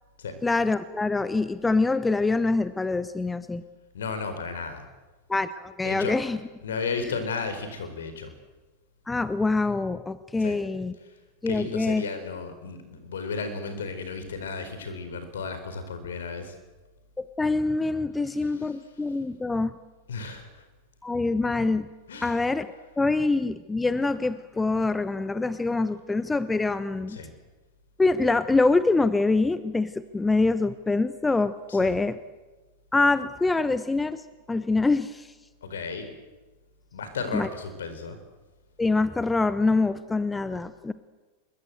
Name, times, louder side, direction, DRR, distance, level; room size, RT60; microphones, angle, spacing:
voice 1, 0.4-3.6 5.3-6.4 7.0-7.1 9.1-10.9 11.4-12.0 17.2-19.7 21.0-21.9 22.2-27.2 28.0-32.2 32.9-35.3 37.3-37.5 38.8-40.9, left 3 dB, 10° left, 14 dB, 0.9 m, -25 dB
voice 2, 3.9-4.9 5.8-6.1 6.6-8.3 10.4-10.6 11.5-16.5 20.1-20.6 22.1-22.4 27.1-27.3 31.7-32.0 35.6-36.1 36.9-38.2, left 4 dB, 65° left, 10 dB, 4.4 m, -34 dB
24.5 x 22.5 x 8.0 m, 1.3 s
figure-of-eight pair, 90°, 0 cm